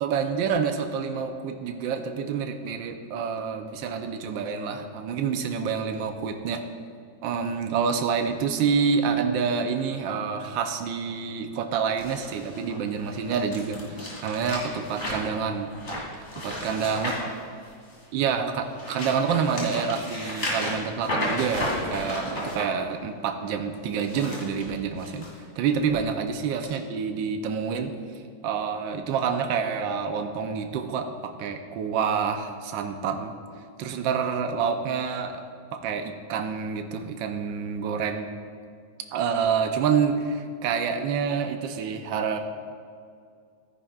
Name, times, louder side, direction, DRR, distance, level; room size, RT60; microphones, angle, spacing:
voice 1, 0.0-6.6 7.2-15.7 16.4-17.1 18.1-25.3 25.6-27.9 28.4-33.3 33.8-35.4 35.7-38.3 39.1-42.4, right 6 dB, 75° right, 6 dB, 1.4 m, -27 dB
sound 1, 12.0-18.1 18.6-22.6 23.9-25.3 25.7-26.0 26.6-26.7, left 1 dB, 35° left, 2.5 m, -33 dB
14.0 x 9.8 x 2.4 m, 2.3 s
omnidirectional pair, 2.2 m